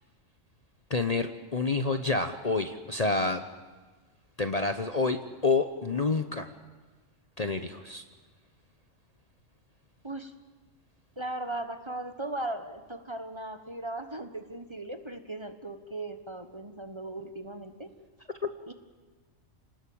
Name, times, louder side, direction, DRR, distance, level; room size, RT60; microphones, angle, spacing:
voice 1, 0.9-3.4 4.4-6.5 7.4-8.0, left 3 dB, 35° left, 8 dB, 1.0 m, -28 dB
voice 2, 11.2-17.9 18.7-18.8, right 2 dB, 20° right, 8 dB, 1.3 m, -38 dB
28.5 x 19.5 x 8.7 m, 1.3 s
omnidirectional pair, 1.3 m